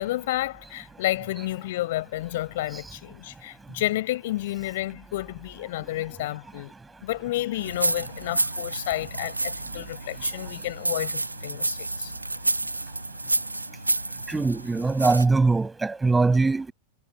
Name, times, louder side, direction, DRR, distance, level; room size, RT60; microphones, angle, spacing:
voice 1, 0.0-6.7 7.0-12.1, left 16 dB, 55° left, 7.4 m, -31 dB
sound 1, 7.6-15.3, right 2 dB, 85° right, 1.9 m, -30 dB
voice 2, 14.3-16.7, right 3 dB, 10° right, 6.6 m, -22 dB
figure-of-eight pair, 90°, 0 cm